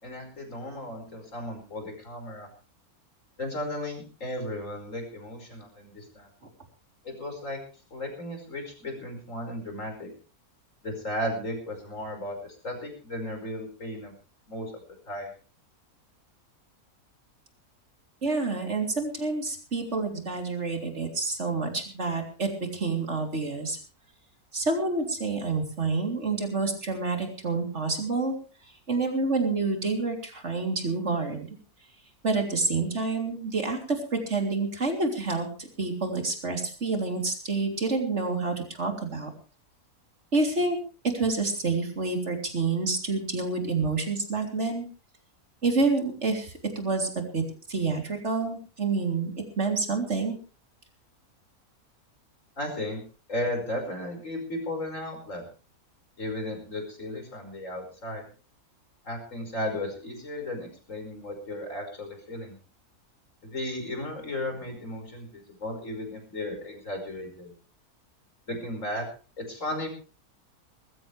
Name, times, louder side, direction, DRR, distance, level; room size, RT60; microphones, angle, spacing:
voice 1, 0.0-2.5 3.4-6.3 7.0-7.6 7.9-10.1 10.8-12.4 12.6-14.1 14.5-14.7 15.1-15.3 52.6-53.0 53.3-55.4 56.2-58.2 59.0-62.6 63.4-67.5 68.5-69.0 69.4-69.9, left 1 dB, 55° left, 4 dB, 5.7 m, -35 dB
voice 2, 18.2-23.8 24.5-28.4 28.9-31.5 32.2-39.3 40.3-40.8 41.1-44.9 45.6-47.4 47.7-50.4, right 3 dB, 50° right, 3 dB, 3.7 m, -28 dB
20.5 x 15.0 x 3.3 m, 0.36 s
omnidirectional pair, 1.6 m